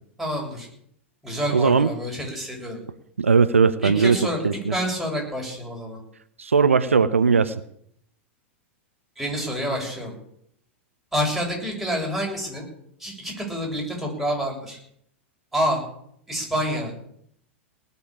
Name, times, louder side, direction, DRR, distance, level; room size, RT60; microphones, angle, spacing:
voice 1, 0.2-0.7 1.2-2.8 3.8-4.4 4.7-6.0 9.2-10.1 11.1-12.7 13.0-14.8 15.5-15.8 16.3-16.9, equal, ahead, -2 dB, 7.4 m, -27 dB
voice 2, 1.5-1.9 3.2-4.7 6.4-7.5, right 5 dB, 80° right, 13 dB, 0.8 m, -19 dB
19.5 x 6.9 x 8.9 m, 0.68 s
figure-of-eight pair, 95°, 7 cm